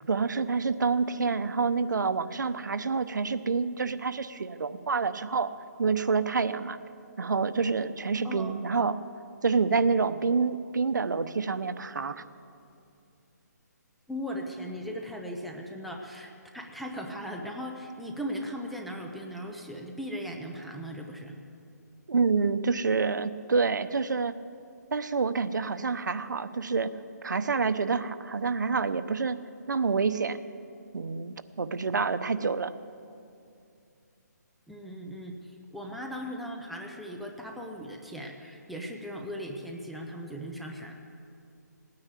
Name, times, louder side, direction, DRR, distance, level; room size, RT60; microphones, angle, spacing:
voice 1, 0.1-5.5 5.8-6.8 7.2-9.0 9.4-12.2 22.1-24.4 24.9-26.9 27.2-29.4 29.7-30.4 30.9-32.7, right 4 dB, 80° right, 12 dB, 0.8 m, -27 dB
voice 2, 8.2-8.5 14.1-21.4 34.7-40.9, equal, ahead, 0 dB, 0.7 m, -38 dB
18.0 x 9.7 x 8.2 m, 2.6 s
hypercardioid pair, 165°, 10 cm